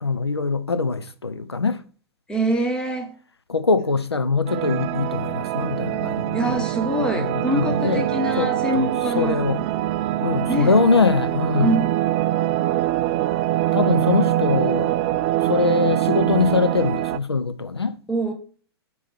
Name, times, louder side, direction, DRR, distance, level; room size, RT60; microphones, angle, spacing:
voice 1, 0.0-1.8 3.5-6.6 7.0-8.1 8.4-9.6 10.2-11.7 13.7-14.9 15.4-17.9, left 4 dB, 80° left, 0.7 m, -22 dB
voice 2, 2.3-3.1 6.3-9.5 10.5-10.8 11.6-11.9 18.1-18.3, right 1 dB, 5° left, 1.2 m, -24 dB
sound 1, 4.5-17.2, right 14 dB, 35° right, 0.4 m, -24 dB
6.9 x 4.7 x 6.2 m
figure-of-eight pair, 105°, 13 cm